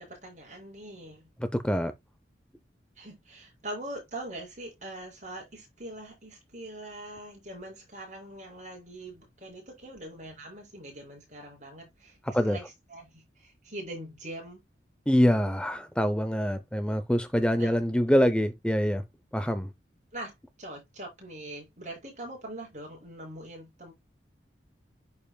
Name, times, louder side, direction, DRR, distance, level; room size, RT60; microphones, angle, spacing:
voice 1, 0.0-1.3 3.0-14.6 17.6-17.8 18.2-18.3 20.1-23.9, right 1 dB, 40° right, 6.3 m, -42 dB
voice 2, 1.4-1.9 12.3-12.6 15.1-19.0 19.3-19.7, equal, 5° left, 0.6 m, -25 dB
11.0 x 5.5 x 2.2 m
head